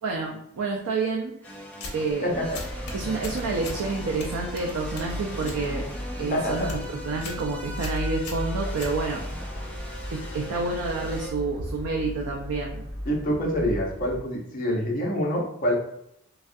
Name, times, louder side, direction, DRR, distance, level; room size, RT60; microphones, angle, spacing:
voice 1, 0.0-1.6 1.9-2.3 2.9-5.9 6.2-6.8 7.0-9.3 10.1-12.8, right 3 dB, 85° right, 0 dB, 0.4 m, -29 dB
sound 1, 1.4-11.3, equal, 5° left, 0.4 m, -39 dB
sound 2, 1.7-2.1 2.5-3.8 4.2-5.6 6.0-6.3 6.6-6.9 7.2-7.4 7.8-9.4, left 2 dB, 80° left, 0.6 m, -38 dB
voice 2, 2.2-2.6 6.3-6.7 13.1-15.7, equal, 40° left, -2 dB, 0.7 m, -26 dB
sound 3, 2.3-14.2, equal, 40° right, 0.9 m, -36 dB
3.3 x 2.4 x 2.5 m, 0.76 s
head